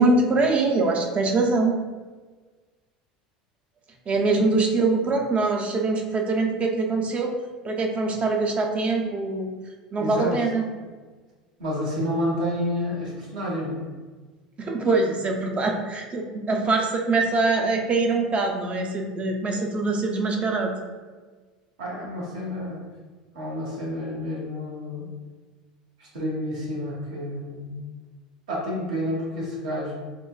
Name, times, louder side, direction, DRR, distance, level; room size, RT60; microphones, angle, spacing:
voice 1, 0.0-1.8 4.1-7.3 7.6-9.5 9.9-10.6 14.6-20.7, right 3 dB, 30° right, 2 dB, 0.5 m, -23 dB
voice 2, 10.0-10.3 11.6-13.9 21.8-22.8 23.3-25.1 26.0-27.8 28.5-29.9, equal, 75° right, -5 dB, 1.1 m, -29 dB
3.7 x 2.1 x 2.3 m, 1.4 s
hypercardioid pair, 75°, 4 cm